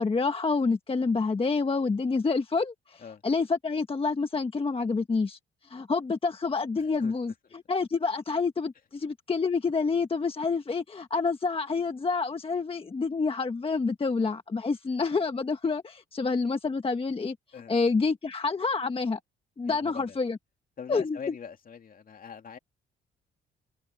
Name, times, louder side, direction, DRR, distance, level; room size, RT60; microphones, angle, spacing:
voice 1, 0.0-5.4 5.7-17.3 17.7-19.2 19.6-20.4 20.9-21.3, left 4 dB, 30° left, 1.4 m, -28 dB
voice 2, 19.6-20.2 20.8-22.6, left 6 dB, 45° left, 2.4 m, -42 dB
cardioid pair, 90°, 20 cm